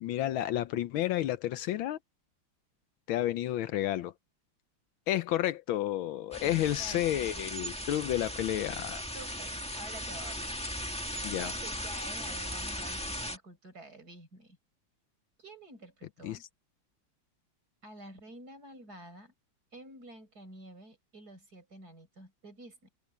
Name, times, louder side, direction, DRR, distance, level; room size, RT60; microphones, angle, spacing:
voice 1, 0.0-2.0 3.1-4.1 5.1-9.0 11.2-11.5 16.2-16.4, left 13 dB, 75° left, 1.5 m, -31 dB
sound 1, 6.3-13.4, equal, 5° left, 1.7 m, -38 dB
voice 2, 6.4-7.4 9.1-10.6 11.4-14.6 15.4-16.4 17.8-19.3 19.7-22.9, right 2 dB, 45° right, 7.0 m, -49 dB
omnidirectional pair, 2.3 m